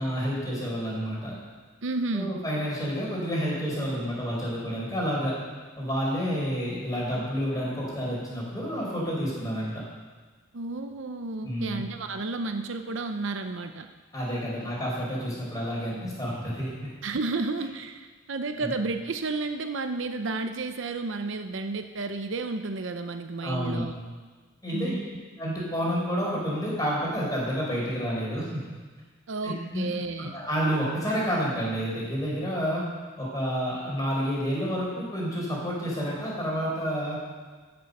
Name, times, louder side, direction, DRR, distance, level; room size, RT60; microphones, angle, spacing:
voice 1, 0.0-1.3 2.1-5.4 5.8-9.8 11.4-11.8 14.1-16.9 18.6-18.7 23.4-23.8 24.6-25.0 25.4-28.6 29.4-32.8 33.2-37.1, equal, 20° left, -5 dB, 4.7 m, -29 dB
voice 2, 1.8-2.4 10.5-13.9 17.0-23.9 24.7-25.0 29.3-30.4, right 3 dB, 65° right, 7 dB, 0.7 m, -32 dB
15.5 x 6.9 x 6.6 m, 1.4 s
head